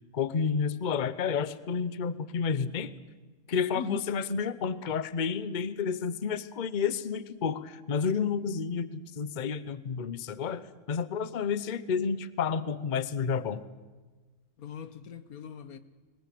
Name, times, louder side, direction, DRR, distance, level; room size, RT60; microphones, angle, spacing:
voice 1, 0.1-2.9 3.5-13.6, left 6 dB, 40° left, 0.8 m, -30 dB
voice 2, 3.7-4.1 14.6-15.8, left 5 dB, 90° left, 1.6 m, -39 dB
21.5 x 19.5 x 8.5 m
omnidirectional pair, 1.5 m